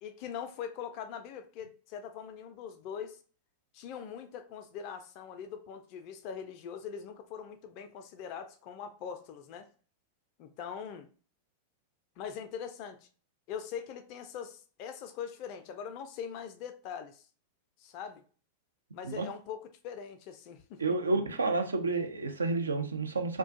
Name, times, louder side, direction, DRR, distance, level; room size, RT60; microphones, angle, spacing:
voice 1, 0.0-3.2 3.7-9.7 10.4-11.1 12.2-13.1 13.5-17.2 17.8-18.2 18.9-21.0, left 7 dB, 45° left, 0.4 m, -42 dB
voice 2, 20.8-23.4, right 3 dB, 75° right, 0.4 m, -30 dB
2.4 x 2.2 x 2.4 m
figure-of-eight pair, 90°, 0 cm